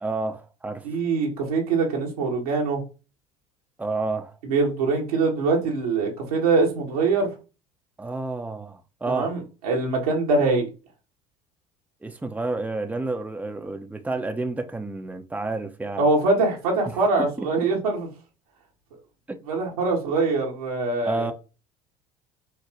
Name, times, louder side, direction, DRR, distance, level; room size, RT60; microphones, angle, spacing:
voice 1, 0.0-0.9 3.8-4.3 8.0-9.3 12.0-16.1 16.9-17.3 19.3-19.4 21.0-21.3, right 3 dB, 10° right, 0.7 m, -30 dB
voice 2, 0.8-2.8 4.4-7.3 9.1-10.7 16.0-18.1 19.5-21.3, right 3 dB, 90° right, 1.6 m, -23 dB
5.6 x 2.9 x 3.0 m
hypercardioid pair, 70°, 18 cm